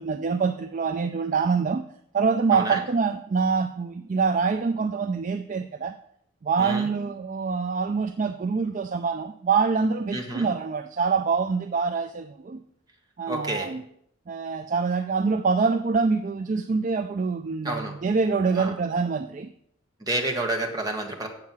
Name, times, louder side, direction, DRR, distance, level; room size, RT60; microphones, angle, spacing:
voice 1, 0.0-1.8 2.1-6.0 6.4-12.6 13.2-13.8 14.3-19.5, right 5 dB, 35° right, 0.3 m, -25 dB
voice 2, 2.5-2.8 6.6-6.9 10.1-10.5 13.3-13.7 17.6-17.9 18.5-18.8 20.0-21.3, right 2 dB, 20° right, 1.4 m, -29 dB
7.6 x 7.4 x 6.0 m
head